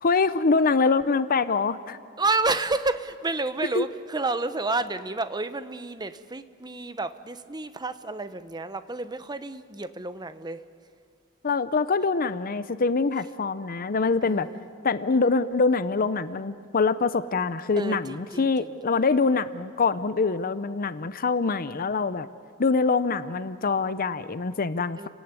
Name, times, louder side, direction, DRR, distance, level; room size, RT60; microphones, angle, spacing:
voice 1, 0.0-2.0 3.7-3.8 11.4-14.5 14.8-22.3 22.6-25.1, left 4 dB, 40° left, 0.7 m, -24 dB
voice 2, 2.2-10.6 14.2-14.6 17.8-18.4 25.0-25.1, right 3 dB, 20° right, 0.9 m, -30 dB
29.5 x 17.5 x 9.7 m
head